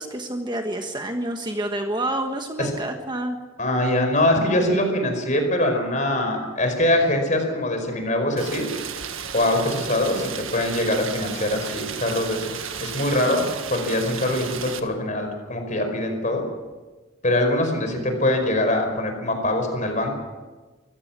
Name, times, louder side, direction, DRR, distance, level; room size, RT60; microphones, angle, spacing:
voice 1, 0.0-3.4 13.3-13.5, right 1 dB, 20° right, 4 dB, 1.3 m, -28 dB
voice 2, 3.6-8.7 9.3-12.5 12.8-16.4 17.2-20.2, left 1 dB, 35° left, 5 dB, 5.0 m, -23 dB
Rain, 8.4-14.8, right 7 dB, 80° right, 1.7 m, -34 dB
24.5 x 16.5 x 7.5 m, 1.3 s
head